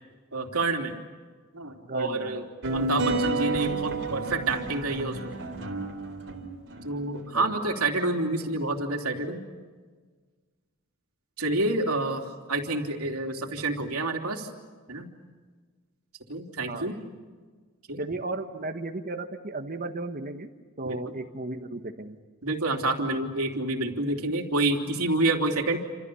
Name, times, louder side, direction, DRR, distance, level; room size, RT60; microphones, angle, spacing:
voice 1, 0.3-1.0 1.5-5.3 6.8-9.4 11.4-12.2 12.5-14.5 14.9-15.1 16.3-16.9 17.9-18.0 20.8-21.1 22.4-25.8, right 2 dB, 90° right, 3 dB, 3.3 m, -28 dB
voice 2, 1.8-2.5 7.3-7.6 16.7-16.9 18.0-20.5 20.8-22.2, right 2 dB, 40° right, 5 dB, 1.4 m, -35 dB
sound 1, 2.6-7.2, right 2 dB, 55° right, 3.8 m, -30 dB
29.0 x 27.5 x 7.0 m, 1.5 s
head